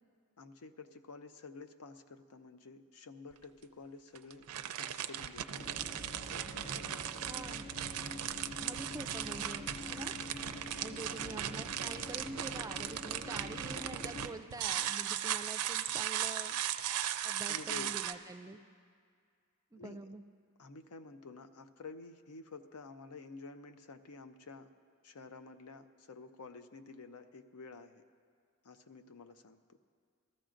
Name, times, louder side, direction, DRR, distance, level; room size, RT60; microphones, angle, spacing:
voice 1, 0.4-4.5 4.8-5.9 6.2-7.2 8.1-8.4 10.1-11.6 17.5-17.9 19.8-20.0 20.6-24.7 25.0-28.0 28.6-29.6, left 3 dB, 90° left, 9 dB, 0.6 m, -51 dB
sound 1, 3.3-3.4 4.1-18.1, right 10 dB, 90° right, 0.4 m, -37 dB
sound 2, 5.6-14.3, left 1 dB, 70° left, 2.2 m, -47 dB
voice 2, 7.3-7.7 8.6-10.1 10.8-16.6 17.2-18.6 19.7-20.2, right 2 dB, 15° right, 7 dB, 0.3 m, -46 dB
Mallet percussion, 16.1-18.2, right 4 dB, 30° left, 0.8 m, -55 dB
20.0 x 14.0 x 2.5 m, 2.2 s
head